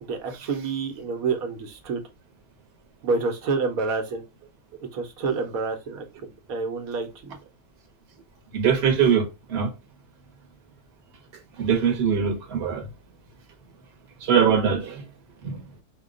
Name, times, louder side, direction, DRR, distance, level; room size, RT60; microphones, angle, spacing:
voice 1, 0.0-2.0 3.0-4.2 4.9-6.1 6.5-7.4, right 4 dB, 90° right, 1.2 m, -28 dB
voice 2, 8.5-9.7 11.6-12.9 14.2-15.0 15.4-15.6, right 7 dB, 50° right, 1.1 m, -22 dB
4.9 x 2.2 x 3.7 m
omnidirectional pair, 1.4 m